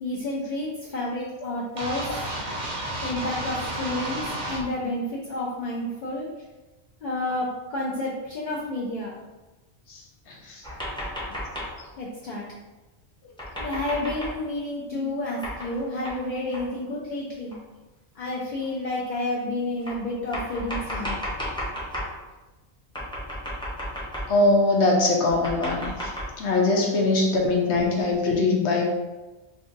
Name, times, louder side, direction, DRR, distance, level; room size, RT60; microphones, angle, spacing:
voice 1, 0.0-2.2 3.0-6.3 7.0-9.1 12.0-12.4 13.6-17.5 18.2-21.2, left 1 dB, 55° left, -4 dB, 0.6 m, -30 dB
sound 1, 1.8-4.6, right 1 dB, 50° right, 0.7 m, -31 dB
sound 2, 10.6-11.8 13.4-14.4 15.4-15.8 16.0-16.2 16.5-16.7 17.5-17.6 18.6-18.7 19.9-22.2 22.9-24.5 25.3-26.3, equal, 5° left, 0.5 m, -33 dB
voice 2, 24.3-25.9 26.4-28.8, left 2 dB, 80° left, 0 dB, 0.9 m, -21 dB
2.5 x 2.5 x 3.8 m, 1.1 s
omnidirectional pair, 1.2 m